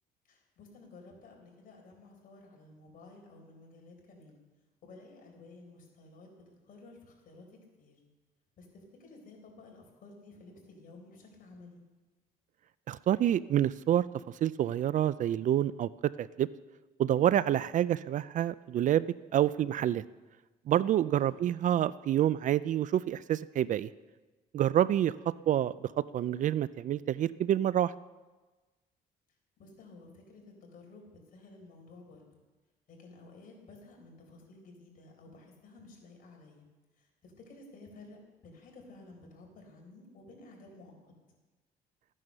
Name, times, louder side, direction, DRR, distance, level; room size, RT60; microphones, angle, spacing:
voice 1, 0.2-4.4 4.8-8.0 8.6-11.8 21.3-21.5 25.2-25.5 29.6-32.2 32.9-36.7 37.0-40.9, left 2 dB, 55° left, 1 dB, 4.4 m, -53 dB
voice 2, 12.9-14.1 14.4-15.9 16.2-16.5 17.0-19.1 19.3-20.0 20.7-23.9 24.5-25.1 25.5-27.9, right 11 dB, 50° right, 18 dB, 0.4 m, -27 dB
14.0 x 9.8 x 6.7 m, 1.2 s
cardioid pair, 110°, 17 cm